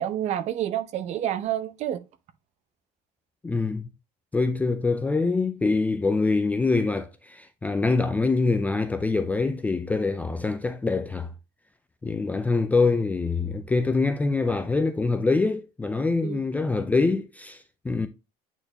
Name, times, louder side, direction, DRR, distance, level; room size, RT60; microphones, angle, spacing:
voice 1, 0.0-2.0 16.2-16.4, right 11 dB, 40° right, 0.7 m, -28 dB
voice 2, 3.4-3.9 4.3-11.3 12.0-18.1, left 3 dB, 10° left, 0.4 m, -24 dB
8.9 x 4.3 x 2.9 m
cardioid pair, 170°, 18 cm